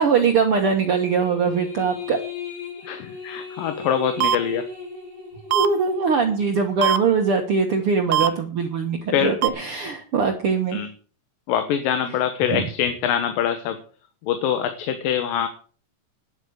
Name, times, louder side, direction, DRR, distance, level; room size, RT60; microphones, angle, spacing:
voice 1, 0.0-2.2 5.5-10.8, right 5 dB, 55° right, 4 dB, 1.6 m, -22 dB
sound 1, 1.2-7.0, left 4 dB, 45° left, 5.8 m, -37 dB
voice 2, 2.8-4.6 9.1-9.4 10.7-10.9 11.5-13.8 14.2-15.5, left 9 dB, 80° left, 8 dB, 2.8 m, -24 dB
sound 2, 4.2-4.4 5.5-5.7 6.8-7.0 8.1-8.3 9.4-9.5, right 10 dB, 90° right, 2.5 m, -19 dB
10.5 x 8.1 x 7.9 m, 0.42 s
omnidirectional pair, 3.9 m